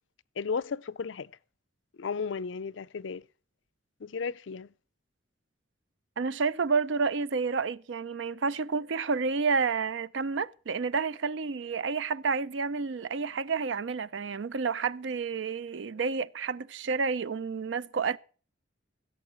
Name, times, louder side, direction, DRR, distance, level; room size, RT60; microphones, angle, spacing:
voice 1, 0.4-1.3 2.0-3.2 4.0-4.7, left 5 dB, 80° left, 0.5 m, -34 dB
voice 2, 6.2-18.2, right 5 dB, 75° right, 0.5 m, -30 dB
16.0 x 7.1 x 6.3 m
head